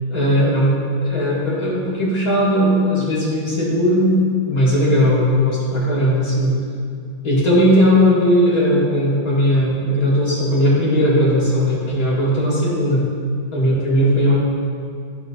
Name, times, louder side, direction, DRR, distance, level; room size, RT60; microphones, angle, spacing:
voice 1, 0.1-4.2 4.4-6.6 7.2-13.1 13.5-14.4, equal, 45° left, -8 dB, 2.6 m, -17 dB
13.5 x 6.3 x 2.6 m, 2.3 s
omnidirectional pair, 2.1 m